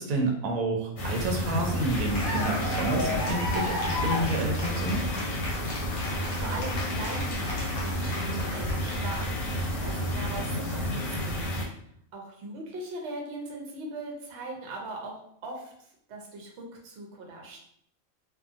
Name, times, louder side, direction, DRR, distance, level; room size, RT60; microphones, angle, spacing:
voice 1, 0.0-5.1, right 2 dB, 85° right, 1 dB, 1.0 m, -29 dB
sound 1, 1.0-11.6, equal, 75° left, 1.1 m, -31 dB
Cheering / Applause, 1.6-9.2, left 1 dB, 50° left, 0.7 m, -34 dB
voice 2, 5.8-11.5 12.1-15.1 15.4-17.6, right 2 dB, 60° right, 0 dB, 0.9 m, -40 dB
2.6 x 2.4 x 2.4 m, 0.69 s
omnidirectional pair, 1.4 m